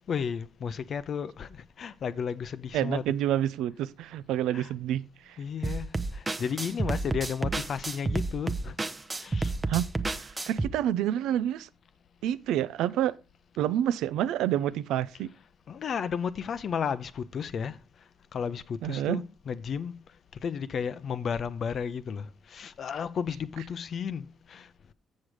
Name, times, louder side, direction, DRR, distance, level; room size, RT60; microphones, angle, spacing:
voice 1, 0.1-3.0 4.5-4.7 5.4-8.8 9.2-9.5 10.1-10.2 15.7-17.8 18.3-19.9 20.3-24.7, left 7 dB, 55° left, 0.6 m, -33 dB
voice 2, 2.7-5.4 9.7-9.9 10.1-11.7 12.2-13.2 13.6-15.3 18.8-19.2, right 11 dB, 90° right, 0.4 m, -28 dB
sound 1, 5.6-10.7, right 3 dB, 20° right, 0.7 m, -30 dB
7.4 x 6.4 x 4.8 m
cardioid pair, 90°, 0 cm